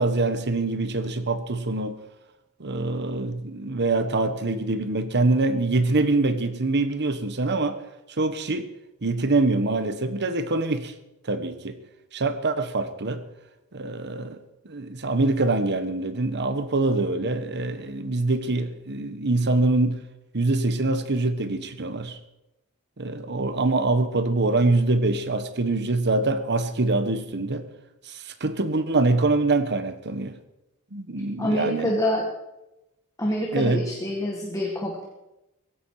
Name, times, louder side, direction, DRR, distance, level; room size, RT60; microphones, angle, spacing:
voice 1, 0.0-2.0 2.6-7.8 8.2-8.7 9.0-10.9 11.3-11.8 12.1-13.2 13.7-14.4 14.6-20.0 20.3-22.2 23.0-27.7 28.1-30.3 30.9-31.9 33.5-33.8, right 2 dB, 50° right, 1.3 m, -24 dB
voice 2, 31.4-32.3 33.2-35.0, equal, 15° left, 1.8 m, -26 dB
17.0 x 15.5 x 4.9 m
head